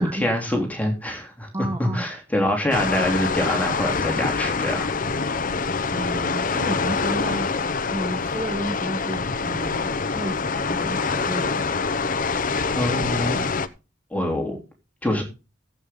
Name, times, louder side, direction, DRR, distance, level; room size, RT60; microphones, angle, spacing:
voice 1, 0.0-4.9 12.7-13.4 14.1-14.6 15.0-15.2, left 1 dB, 10° left, 3.4 m, -25 dB
voice 2, 1.5-2.1 5.9-7.5 7.9-11.7, right 1 dB, 20° right, 1.1 m, -31 dB
sound 1, 2.7-13.7, left 4 dB, 45° left, 0.8 m, -25 dB
15.0 x 8.5 x 3.8 m
head